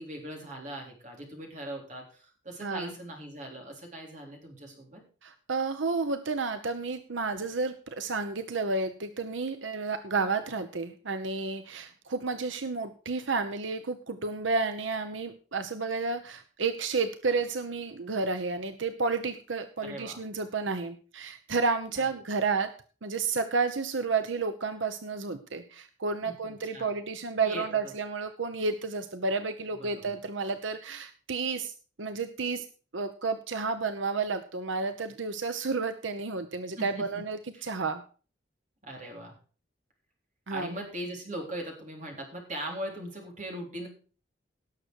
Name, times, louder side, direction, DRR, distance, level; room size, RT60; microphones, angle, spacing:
voice 1, 0.0-5.0 19.8-20.2 21.9-22.0 26.2-26.9 27.4-27.9 29.8-30.2 36.8-37.1 37.5-37.7 38.8-39.3 40.5-43.9, right 1 dB, 40° right, 0 dB, 3.8 m, -40 dB
voice 2, 2.6-2.9 5.2-22.7 23.0-31.7 32.0-32.6 32.9-38.0 40.5-40.7, right 4 dB, 90° right, 9 dB, 0.9 m, -31 dB
17.5 x 6.8 x 4.6 m, 0.38 s
head